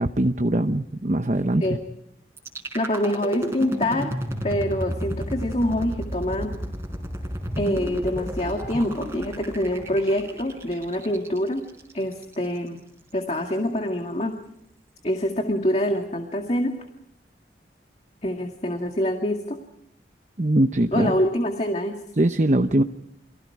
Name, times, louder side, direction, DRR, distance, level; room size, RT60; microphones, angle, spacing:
voice 1, 0.0-1.8 20.4-21.1 22.2-22.8, right 1 dB, 40° right, 8 dB, 0.9 m, -21 dB
sound 1, 2.4-12.4, equal, 15° right, 4.2 m, -32 dB
voice 2, 2.7-4.1 4.4-6.5 7.6-11.6 11.9-12.8 13.1-14.3 15.0-16.7 18.2-19.6 20.9-22.0, left 1 dB, 35° left, 3 dB, 2.1 m, -25 dB
29.5 x 24.0 x 4.8 m, 0.75 s
head